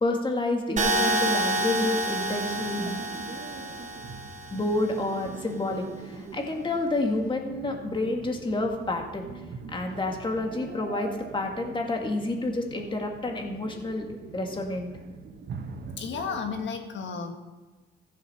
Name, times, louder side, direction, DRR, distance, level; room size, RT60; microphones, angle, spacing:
voice 1, 0.0-2.9 4.5-5.9 6.3-9.3 9.7-14.9, left 2 dB, 25° left, 2 dB, 2.0 m, -29 dB
sound 1, 0.8-4.8, right 1 dB, 40° right, 2.8 m, -28 dB
sound 2, 0.8-16.7, right 5 dB, 60° right, 1.2 m, -43 dB
voice 2, 16.0-17.3, left 5 dB, 65° left, 5 dB, 1.6 m, -33 dB
15.0 x 7.4 x 5.7 m, 1.2 s
cardioid pair, 90°, 20 cm